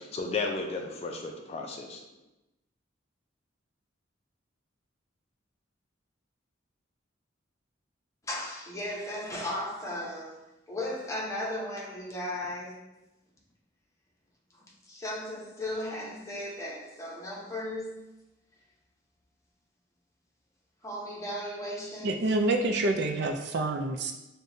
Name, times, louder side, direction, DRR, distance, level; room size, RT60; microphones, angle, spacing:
voice 1, 0.0-2.0, left 3 dB, 35° left, 2 dB, 0.4 m, -34 dB
voice 2, 8.2-10.4 10.7-12.8 14.8-18.0 20.8-22.2, left 1 dB, 15° left, -4 dB, 0.8 m, -36 dB
voice 3, 22.0-24.1, right 2 dB, 60° right, 4 dB, 0.4 m, -27 dB
6.5 x 2.2 x 2.6 m, 0.95 s
head